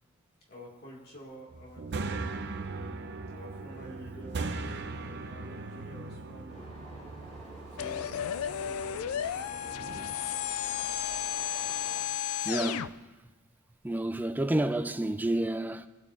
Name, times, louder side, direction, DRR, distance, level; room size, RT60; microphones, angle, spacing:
voice 1, 0.5-7.2 7.7-10.0, equal, 45° left, 2.0 m, -50 dB
sound 1, 1.5-10.1, right 3 dB, 55° right, 0.6 m, -39 dB
sound 2, 6.5-12.0, right 2 dB, 30° left, 3.8 m, -48 dB
sound 3, 7.8-12.9, left 10 dB, 70° left, 0.3 m, -33 dB
voice 2, 12.4-12.9 13.8-15.9, right 1 dB, 10° right, 0.3 m, -29 dB
18.5 x 8.3 x 2.5 m
head